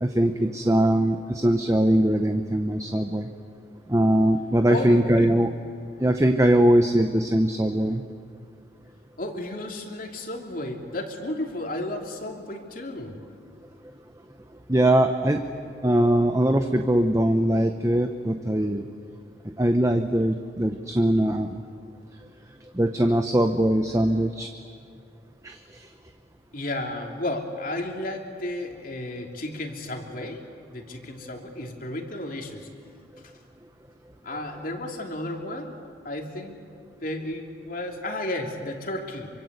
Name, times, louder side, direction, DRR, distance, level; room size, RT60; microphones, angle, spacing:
voice 1, 0.0-3.3 3.9-5.5 6.0-8.0 14.7-15.4 15.8-18.8 19.6-21.6 22.8-24.5 25.4-25.6, right 1 dB, 15° right, 6 dB, 0.8 m, -21 dB
voice 2, 4.7-5.3 9.2-13.2 26.5-32.7 34.2-35.8 36.0-36.6 37.0-39.3, left 1 dB, 45° left, 2 dB, 3.0 m, -33 dB
26.5 x 24.5 x 8.1 m, 2.3 s
head